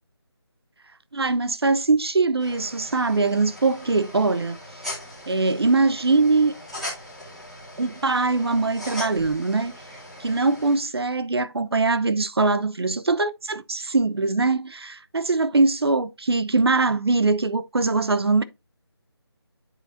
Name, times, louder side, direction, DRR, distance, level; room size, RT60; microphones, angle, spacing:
voice 1, 1.1-4.6 5.3-6.5 7.8-9.7 10.2-18.4, right 3 dB, 65° right, 0.9 m, -22 dB
sound 1, 2.4-10.8, left 1 dB, ahead, 1.1 m, -39 dB
9.7 x 5.4 x 2.6 m
figure-of-eight pair, 175°, 14 cm